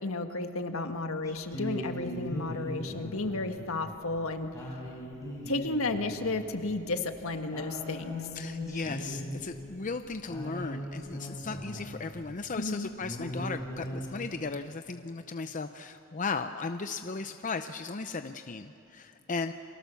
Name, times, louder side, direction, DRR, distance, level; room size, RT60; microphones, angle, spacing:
voice 1, 0.0-4.5 5.5-8.3 12.6-12.9, left 2 dB, 70° left, 6 dB, 1.7 m, -33 dB
sound 1, 1.3-12.3 12.7-12.8 13.0-14.1, left 1 dB, 15° left, 5.5 m, -39 dB
voice 2, 8.3-19.5, left 4 dB, 35° left, 8 dB, 0.6 m, -36 dB
30.0 x 24.0 x 7.1 m, 2.9 s
head